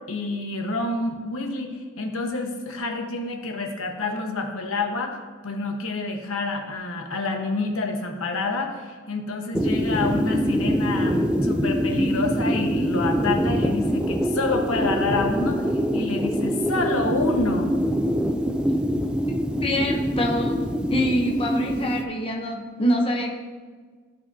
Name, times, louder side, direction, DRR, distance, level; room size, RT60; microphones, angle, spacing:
voice 1, 0.0-5.2 5.4-15.6 15.9-17.7, left 3 dB, 75° left, 2 dB, 1.2 m, -28 dB
sound 1, 9.5-22.0, equal, 5° right, 0.4 m, -24 dB
voice 2, 19.6-23.3, equal, 25° left, 1 dB, 0.8 m, -25 dB
15.5 x 5.7 x 2.7 m, 1.5 s
head